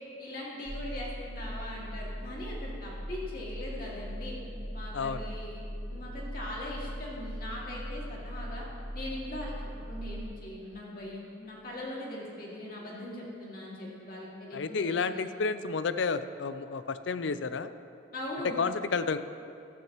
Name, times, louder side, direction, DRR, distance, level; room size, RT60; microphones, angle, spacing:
voice 1, 0.2-4.4 4.7-5.6 5.9-8.7 8.9-15.2 18.1-18.6, left 1 dB, 50° left, -5 dB, 2.3 m, -40 dB
sound 1, 0.7-10.2, equal, 50° right, 2.0 m, -39 dB
voice 2, 4.9-5.3 14.5-17.7 18.4-19.2, left 4 dB, 75° left, 12 dB, 0.5 m, -31 dB
13.5 x 13.0 x 3.0 m, 2.5 s
head